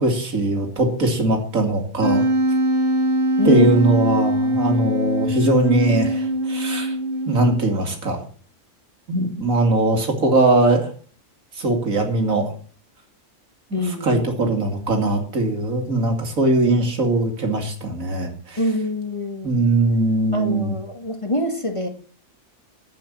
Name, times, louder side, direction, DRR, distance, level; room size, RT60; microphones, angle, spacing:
voice 1, 0.0-2.3 3.4-7.0 7.3-8.2 9.1-10.9 11.5-12.5 13.7-18.6 19.4-20.7, right 2 dB, 80° right, 4 dB, 2.9 m, -20 dB
Wind instrument woodwind instrument, 2.0-7.7, equal, 40° right, 2.2 m, -22 dB
voice 2, 3.4-3.7 13.7-14.2 18.6-19.5 20.3-21.9, left 1 dB, 25° left, 4 dB, 2.0 m, -24 dB
10.5 x 8.6 x 7.3 m, 0.42 s
omnidirectional pair, 1.4 m